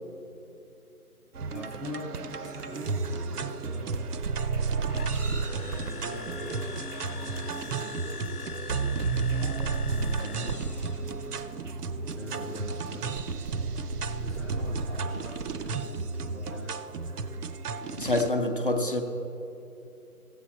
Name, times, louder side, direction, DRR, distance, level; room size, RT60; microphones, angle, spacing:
sound 1, 1.3-18.3, right 4 dB, 80° right, 0.7 m, -32 dB
voice 1, 1.5-4.1 5.6-8.1 8.8-10.7 12.1-13.1 14.0-16.8, equal, ahead, -6 dB, 0.5 m, -43 dB
sound 2, 4.8-11.2, left 7 dB, 75° left, 0.7 m, -43 dB
voice 2, 18.0-19.0, left 2 dB, 35° left, 3 dB, 0.7 m, -26 dB
14.5 x 8.1 x 4.2 m, 2.8 s
figure-of-eight pair, 165°, 45 cm